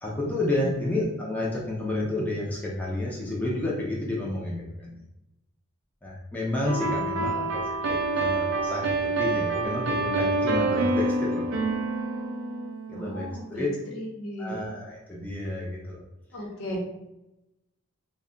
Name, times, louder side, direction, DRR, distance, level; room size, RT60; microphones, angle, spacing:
voice 1, 0.0-5.0 6.0-11.4 12.9-13.7 14.4-16.0, left 1 dB, 5° left, -4 dB, 0.4 m, -30 dB
voice 2, 0.6-0.9 6.9-7.5 12.9-13.7 13.9-14.5 16.3-16.8, equal, 80° left, -2 dB, 0.8 m, -36 dB
sound 1, 6.7-13.4, right 2 dB, 65° right, 0.4 m, -27 dB
2.3 x 2.1 x 3.7 m, 0.89 s
head